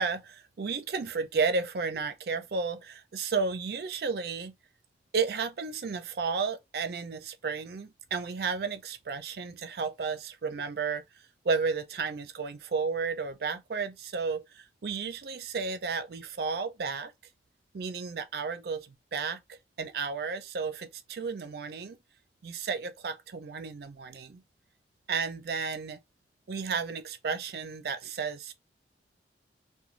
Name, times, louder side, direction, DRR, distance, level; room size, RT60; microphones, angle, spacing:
voice 1, 0.0-4.5 5.1-17.1 17.7-22.0 22.4-24.4 25.1-26.0 26.5-28.5, right 5 dB, 55° right, 0.4 m, -33 dB
3.1 x 2.1 x 2.4 m
head